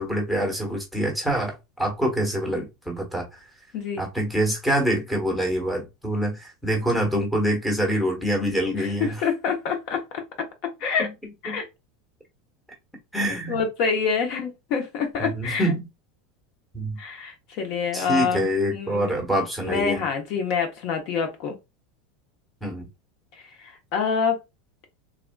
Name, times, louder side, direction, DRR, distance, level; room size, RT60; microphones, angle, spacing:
voice 1, 0.0-3.3 4.0-9.2 11.0-11.1 11.5-11.6 13.1-13.6 15.2-15.9 16.7-17.0 17.9-20.0 22.6-22.9, right 1 dB, ahead, 1.2 m, -25 dB
voice 2, 3.7-4.1 8.8-10.2 10.6-11.1 11.4-11.6 13.5-15.7 17.0-19.1 19.6-21.5 23.6-24.4, left 6 dB, 55° left, 0.8 m, -26 dB
3.5 x 2.4 x 2.2 m
supercardioid pair, 135°, 0 cm